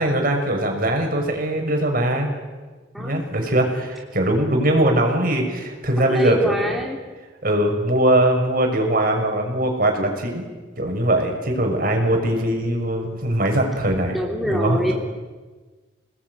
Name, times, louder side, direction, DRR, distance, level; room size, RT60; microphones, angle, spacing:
voice 1, 0.0-2.3 3.0-6.5 7.4-10.4 10.8-14.9, right 1 dB, 50° right, 3 dB, 6.2 m, -21 dB
voice 2, 2.9-3.2 6.1-7.0 14.1-14.9, right 1 dB, ahead, -1 dB, 3.1 m, -24 dB
28.5 x 20.0 x 9.6 m, 1.3 s
head